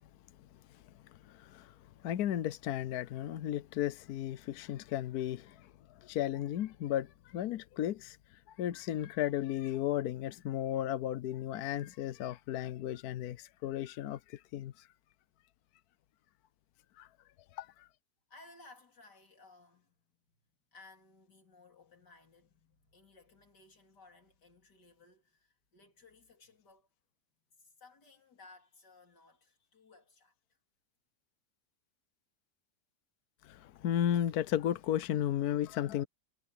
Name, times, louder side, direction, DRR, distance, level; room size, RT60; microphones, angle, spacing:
voice 1, 1.2-1.7 2.0-8.2 8.5-14.9 17.0-17.1 17.5-17.9 33.4-36.1, left 11 dB, 70° left, 1.1 m, -34 dB
voice 2, 18.3-20.2 20.7-26.9 27.6-30.6, left 3 dB, 90° left, 4.3 m, -59 dB
omnidirectional pair, 1.8 m